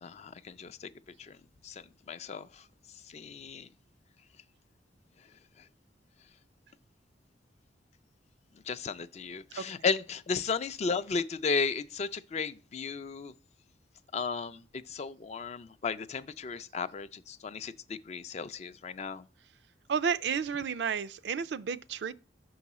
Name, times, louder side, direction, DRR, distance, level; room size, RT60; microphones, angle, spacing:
voice 1, 0.0-0.9 1.2-1.4 1.6-1.8 2.1-2.5 3.1-3.7 8.7-13.3 14.1-14.6 14.9-19.2, left 5 dB, 40° left, 0.4 m, -34 dB
voice 2, 19.9-22.1, right 6 dB, 70° right, 0.4 m, -31 dB
6.1 x 4.7 x 4.1 m
head